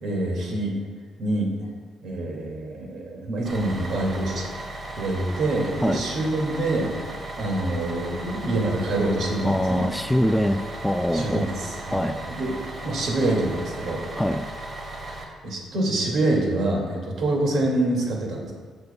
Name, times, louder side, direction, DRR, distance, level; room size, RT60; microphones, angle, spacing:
voice 1, 0.0-0.8 1.2-1.7 2.0-4.5 5.0-6.9 7.4-9.9 11.1-12.6 12.8-14.0 15.2-18.5, right 2 dB, 65° right, 0 dB, 2.3 m, -26 dB
Bus, 3.4-15.2, right 2 dB, 30° right, 1.6 m, -36 dB
voice 2, 9.4-11.5 11.9-12.2 14.2-14.5, equal, 5° left, 8 dB, 0.4 m, -23 dB
15.0 x 7.9 x 2.3 m, 1.5 s
cardioid pair, 90°, 0 cm